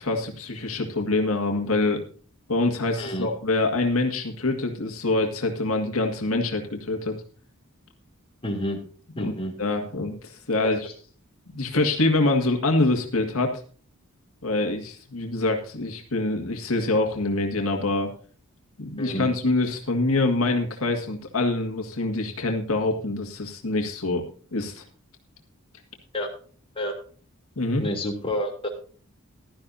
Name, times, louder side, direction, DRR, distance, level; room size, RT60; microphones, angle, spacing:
voice 1, 0.0-2.0 2.5-7.1 9.2-9.3 9.6-10.8 11.5-13.6 14.4-18.1 18.8-24.2 24.5-24.8 27.6-27.8, left 2 dB, 75° left, 3 dB, 2.0 m, -25 dB
voice 2, 8.4-8.8 9.2-9.5 10.8-10.9 19.0-19.3 26.1-26.3 26.7-26.9 27.8-28.7, equal, 25° left, 1 dB, 3.0 m, -29 dB
16.5 x 12.0 x 2.7 m, 0.41 s
head